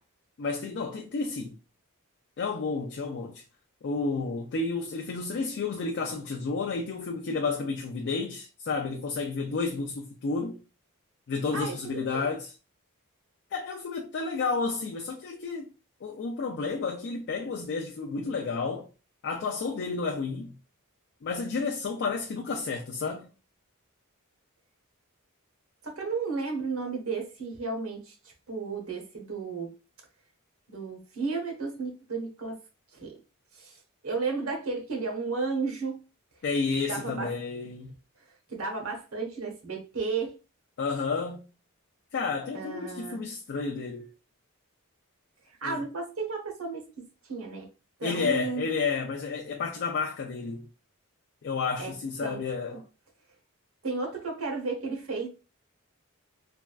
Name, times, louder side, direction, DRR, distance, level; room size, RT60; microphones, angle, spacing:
voice 1, 0.4-1.6 2.4-3.4 3.8-10.6 11.3-12.5 13.5-15.7 16.0-18.9 19.2-20.5 21.2-23.3 36.4-37.9 40.8-41.5 42.1-44.1 45.6-45.8 48.0-50.7 51.4-52.8, left 4 dB, 55° left, 0.4 m, -31 dB
voice 2, 11.5-12.3 25.8-28.1 28.5-29.7 30.7-32.6 32.9-33.1 33.5-36.0 36.9-37.3 38.5-40.3 42.5-43.2 45.4-46.9 47.3-47.7 48.0-48.6 51.8-51.9 52.2-52.4 53.8-55.3, right 4 dB, 70° right, 1.0 m, -33 dB
3.4 x 2.3 x 2.2 m
head